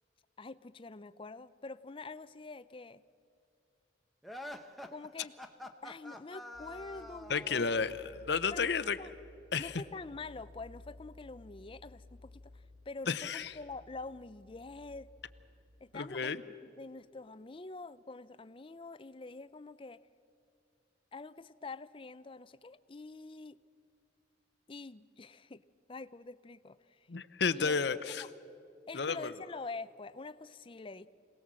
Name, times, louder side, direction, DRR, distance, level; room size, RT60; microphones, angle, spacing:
voice 1, 0.4-3.0 4.9-5.3 5.8-7.8 8.5-9.1 9.6-15.1 15.8-20.0 21.1-23.6 24.7-25.6 25.9-27.1 27.5-28.3 28.9-31.1, left 3 dB, 30° left, 15 dB, 0.5 m, -46 dB
sound 1, 4.2-7.8, left 1 dB, ahead, 0.9 m, -47 dB
sound 2, 6.5-15.6, left 2 dB, 65° right, 6.7 m, -56 dB
voice 2, 7.3-9.0 9.5-9.8 13.1-13.5 15.9-16.4 27.1-28.2 28.9-29.3, left 5 dB, 60° left, 12 dB, 0.7 m, -32 dB
26.0 x 18.5 x 7.5 m, 2.5 s
head